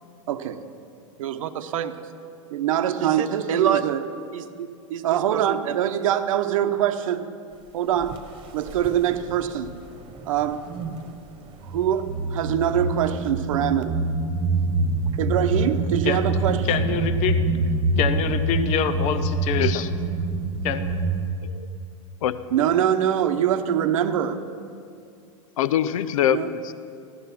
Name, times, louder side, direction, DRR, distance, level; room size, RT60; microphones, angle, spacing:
voice 1, 0.3-0.6 1.2-2.0 2.5-7.3 7.7-8.2 8.5-9.7 10.3-10.7 11.7-14.0 15.2-16.8 22.5-24.4 26.3-26.5, right 10 dB, 75° right, 9 dB, 0.9 m, -24 dB
sound 1, 8.0-8.2 8.7-9.8 10.2-11.1 11.6-21.3, right 2 dB, 30° right, 1.3 m, -25 dB
voice 2, 16.0-17.4 18.0-19.9 20.6-20.8, left 8 dB, 40° left, 10 dB, 0.8 m, -26 dB
voice 3, 19.6-19.9 21.4-21.7 22.2-22.4 25.6-26.7, left 10 dB, 80° left, 14 dB, 0.6 m, -24 dB
15.5 x 11.5 x 5.8 m, 2.5 s
hypercardioid pair, 120°, 17 cm